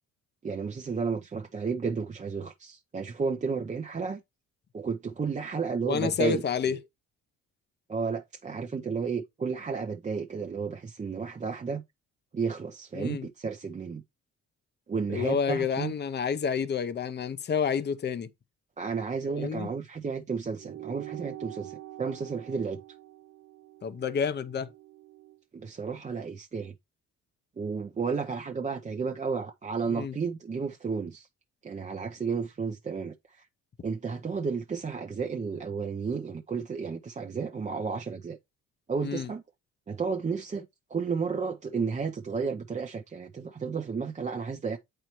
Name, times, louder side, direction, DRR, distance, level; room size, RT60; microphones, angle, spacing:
voice 1, 0.4-4.2 4.7-6.4 6.7-6.8 7.9-11.8 12.3-14.0 14.9-15.9 18.8-22.8 25.5-26.7 27.6-31.3 31.6-33.5 33.8-38.4 38.9-39.4 39.9-44.8, right 5 dB, 25° right, 0.6 m, -32 dB
voice 2, 5.8-6.8 12.9-13.3 15.1-18.3 19.3-19.7 23.8-24.7 29.9-30.2 39.0-39.3, left 6 dB, 35° left, 0.7 m, -29 dB
sound 1, 20.6-25.4, right 15 dB, 80° right, 0.6 m, -45 dB
7.9 x 4.4 x 3.0 m
cardioid pair, 90°, 30 cm